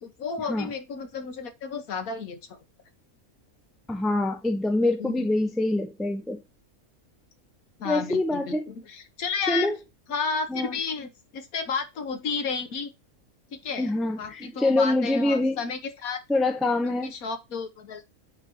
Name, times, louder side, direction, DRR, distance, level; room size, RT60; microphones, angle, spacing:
voice 1, 0.0-2.6 5.0-5.3 7.8-9.7 10.1-12.9 13.5-13.9 14.2-16.2 17.0-18.0, left 5 dB, 75° left, 1.5 m, -32 dB
voice 2, 3.9-6.4 7.8-8.6 9.5-9.7 10.5-10.8 13.8-15.6 16.3-17.1, left 2 dB, ahead, 0.4 m, -25 dB
9.8 x 3.5 x 3.0 m
omnidirectional pair, 1.5 m